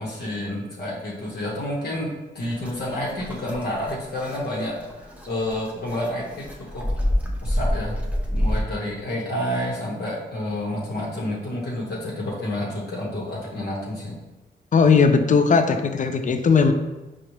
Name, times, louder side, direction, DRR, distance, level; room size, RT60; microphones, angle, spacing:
voice 1, 0.0-2.1 2.3-6.5 6.7-6.9 7.4-8.0 8.3-14.2, left 1 dB, 60° left, -5 dB, 0.8 m, -29 dB
sound 1, 2.4-8.6, equal, 5° right, 0.7 m, -28 dB
voice 2, 14.7-16.7, left 5 dB, 45° left, 8 dB, 0.4 m, -18 dB
5.0 x 2.1 x 3.0 m, 1.1 s
cardioid pair, 60°, 19 cm